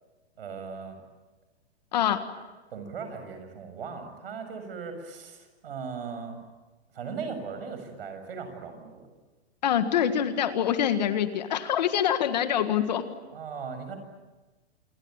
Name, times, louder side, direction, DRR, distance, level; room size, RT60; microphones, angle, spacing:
voice 1, 0.4-1.0 2.7-6.4 6.9-9.1 13.3-14.0, right 5 dB, 60° right, 8 dB, 7.0 m, -38 dB
voice 2, 9.6-13.0, left 9 dB, 40° left, 9 dB, 1.7 m, -25 dB
27.0 x 23.5 x 8.9 m, 1.2 s
hypercardioid pair, 180°, 33 cm